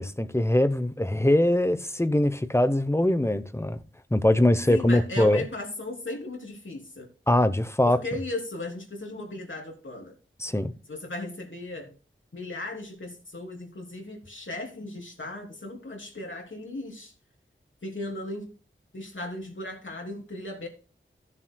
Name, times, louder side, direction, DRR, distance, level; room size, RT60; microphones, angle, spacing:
voice 1, 0.0-3.8 4.1-5.4 7.3-8.0 10.4-10.7, left 1 dB, 10° left, 0.8 m, -22 dB
voice 2, 4.7-7.1 7.8-10.2 10.9-11.9 12.3-17.1 17.8-18.5 18.9-20.7, left 2 dB, 65° left, 3.0 m, -36 dB
16.0 x 7.3 x 2.2 m
wide cardioid pair, 70°, 21 cm